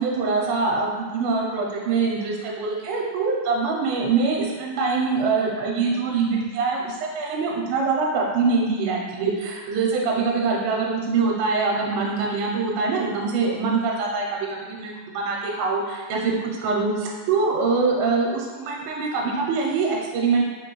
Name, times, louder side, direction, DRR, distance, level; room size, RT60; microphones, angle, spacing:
voice 1, 0.0-20.4, right 4 dB, 85° right, -1 dB, 2.3 m, -24 dB
5.4 x 3.0 x 3.0 m, 1.4 s
omnidirectional pair, 4.1 m